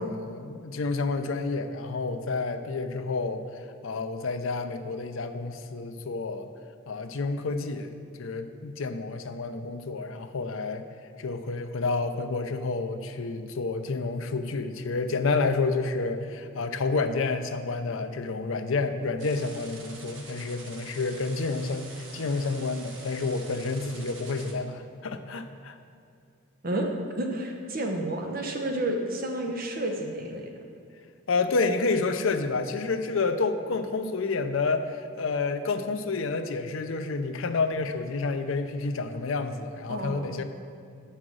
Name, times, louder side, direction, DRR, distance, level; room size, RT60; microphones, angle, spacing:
voice 1, 0.0-3.4 3.8-6.5 6.9-10.9 11.2-25.8 31.3-40.4, left 3 dB, 75° left, 8 dB, 0.6 m, -29 dB
sound 1, 19.2-24.5, right 3 dB, 65° right, 1.2 m, -46 dB
voice 2, 27.2-30.5 39.9-40.3, right 1 dB, 45° right, 2 dB, 0.7 m, -30 dB
7.8 x 5.6 x 6.2 m, 2.4 s
head